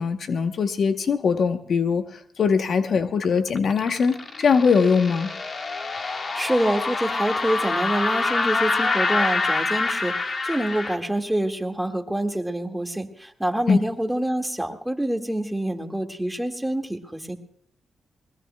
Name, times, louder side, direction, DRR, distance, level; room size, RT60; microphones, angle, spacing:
voice 1, 0.0-2.1 2.4-5.3 13.7-13.8, left 5 dB, 65° left, 9 dB, 0.9 m, -21 dB
sound 1, 3.2-11.0, left 3 dB, 50° left, 1.4 m, -26 dB
voice 2, 6.0-17.4, right 1 dB, 5° right, 5 dB, 1.8 m, -26 dB
20.5 x 20.0 x 2.2 m, 0.66 s
supercardioid pair, 55°, 0 cm